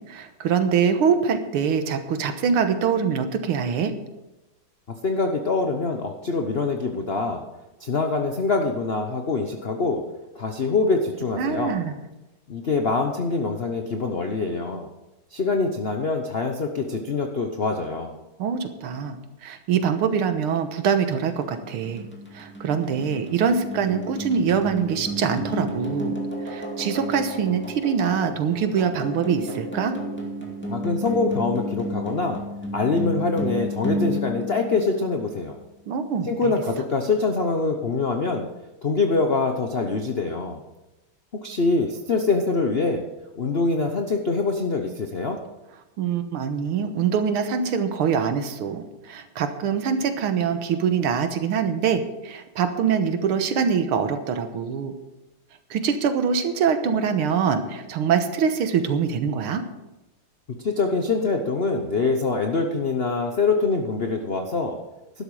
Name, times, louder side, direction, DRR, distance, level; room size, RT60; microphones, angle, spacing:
voice 1, 0.1-3.9 11.4-11.9 18.4-22.1 22.3-26.2 26.5-29.9 35.9-36.5 46.0-54.9 55.7-59.6, right 7 dB, 80° right, 8 dB, 2.0 m, -24 dB
voice 2, 5.0-7.4 7.8-10.0 10.3-11.8 12.5-14.9 15.3-18.1 30.7-32.4 32.7-35.6 36.3-38.5 38.8-40.6 41.4-43.0 43.4-45.4 60.6-64.8, left 3 dB, 55° left, 4 dB, 0.6 m, -24 dB
sound 1, 21.3-35.5, equal, 5° left, 2.0 m, -32 dB
12.5 x 11.5 x 4.9 m, 1.0 s
omnidirectional pair, 2.4 m